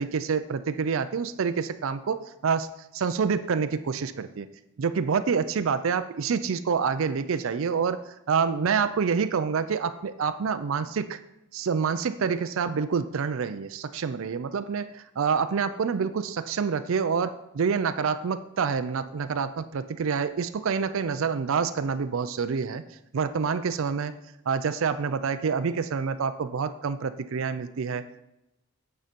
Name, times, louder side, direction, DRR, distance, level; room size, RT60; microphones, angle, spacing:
voice 1, 0.0-2.7 2.9-4.5 4.8-11.2 11.5-22.8 23.1-24.2 24.5-28.0, right 6 dB, 65° right, 10 dB, 0.4 m, -27 dB
9.0 x 5.6 x 5.2 m, 0.89 s
head